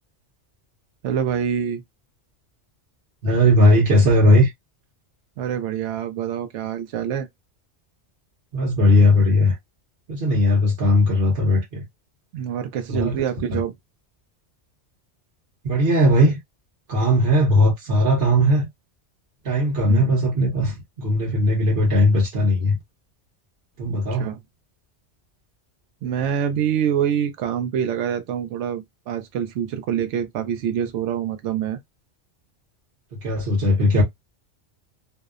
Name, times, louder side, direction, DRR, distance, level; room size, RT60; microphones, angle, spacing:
voice 1, 1.0-1.8 5.4-7.3 12.3-13.7 19.9-20.1 23.9-24.4 26.0-31.8, right 9 dB, 85° right, 0.9 m, -26 dB
voice 2, 3.2-4.5 8.5-9.6 10.1-11.8 12.9-13.1 15.6-16.4 16.9-18.7 19.4-22.8 23.8-24.3 33.2-34.0, left 1 dB, 55° right, 1.1 m, -18 dB
2.7 x 2.0 x 2.3 m
omnidirectional pair, 1.2 m